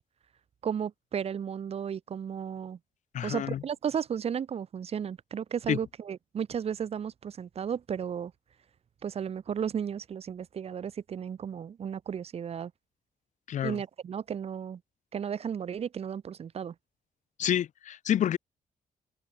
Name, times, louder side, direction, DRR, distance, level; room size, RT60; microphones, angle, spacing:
voice 1, 0.6-2.8 3.2-8.3 9.0-12.7 13.6-14.8 15.1-16.7, right 8 dB, 40° right, 0.5 m, -34 dB
voice 2, 3.1-3.6 5.7-5.8 13.5-13.8 17.4-18.4, left 10 dB, 55° left, 0.4 m, -28 dB
cardioid pair, 115°, 15 cm